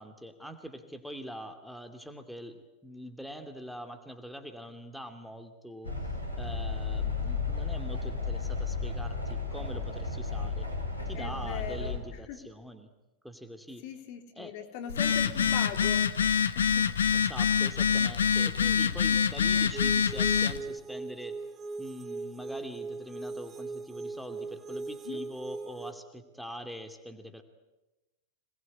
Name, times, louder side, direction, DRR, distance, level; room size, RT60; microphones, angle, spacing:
voice 1, 0.0-2.5 2.8-5.9 6.4-10.7 11.1-12.9 13.2-13.8 14.4-14.5 15.2-15.5 17.1-21.3 21.8-27.4, equal, ahead, 6 dB, 2.5 m, -43 dB
sound 1, 5.8-12.0, left 4 dB, 90° left, 5.4 m, -33 dB
voice 2, 11.1-11.9 12.3-12.4 13.8-16.2 16.5-16.8 25.0-25.2, left 8 dB, 50° left, 6 dB, 3.2 m, -39 dB
Telephone, 14.9-20.6, left 7 dB, 70° left, 1.2 m, -26 dB
sound 2, 19.7-25.9, right 3 dB, 20° right, 1.6 m, -39 dB
27.0 x 20.5 x 9.7 m, 1.0 s
figure-of-eight pair, 90°, 0 cm